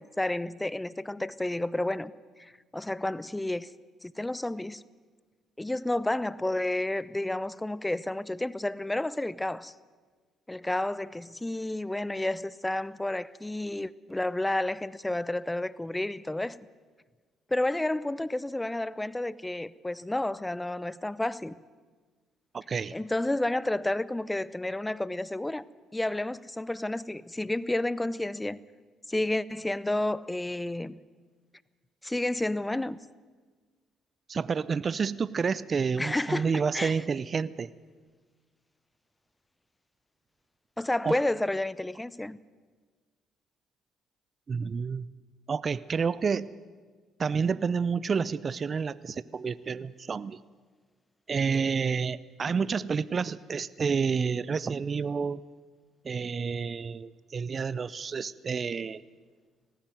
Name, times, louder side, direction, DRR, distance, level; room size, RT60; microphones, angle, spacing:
voice 1, 0.0-2.1 2.4-3.7 4.0-4.8 5.6-9.7 10.5-16.6 17.5-21.5 22.9-25.6 25.9-28.6 29.1-31.0 32.0-33.0 36.0-36.9 40.8-42.4, left 1 dB, 15° left, 0.7 m, -31 dB
voice 2, 22.5-22.9 34.3-37.7 41.0-41.2 44.5-45.1 45.5-46.5 47.2-50.4 51.3-55.4 56.0-59.0, right 5 dB, 45° right, 0.6 m, -29 dB
19.0 x 15.5 x 9.4 m
hypercardioid pair, 55°, 0 cm